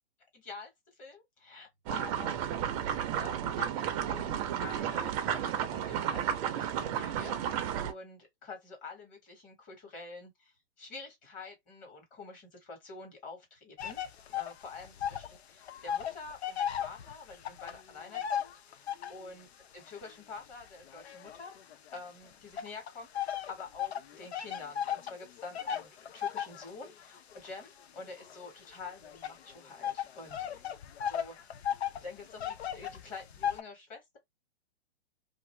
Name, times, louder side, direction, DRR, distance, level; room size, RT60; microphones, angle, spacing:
voice 1, 0.3-0.7 1.0-2.7 3.2-10.5 10.8-14.0 14.3-19.5 19.7-21.5 21.9-30.6 31.1-31.6 31.9-34.2, left 4 dB, 25° left, 1.4 m, -47 dB
sound 1, 1.9-7.9, right 9 dB, 35° right, 0.6 m, -33 dB
sound 2, 13.8-15.4 15.6-19.3 19.9-21.9 22.6-33.6, left 9 dB, 75° left, 0.6 m, -37 dB
2.6 x 2.5 x 3.1 m
hypercardioid pair, 135°, 32 cm